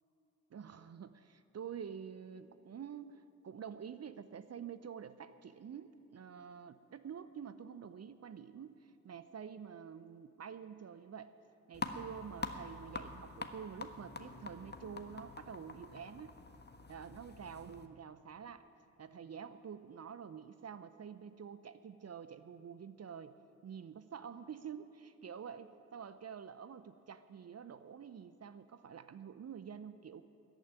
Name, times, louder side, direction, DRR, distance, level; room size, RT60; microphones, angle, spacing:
voice 1, 0.5-11.3 11.7-16.3 16.9-18.6 19.0-23.3 23.6-30.2, right 7 dB, 40° right, 13 dB, 0.8 m, -48 dB
sound 1, 11.7-17.9, left 3 dB, 25° left, 1.4 m, -46 dB
14.5 x 8.9 x 9.6 m, 3.0 s
hypercardioid pair, 40°, 39 cm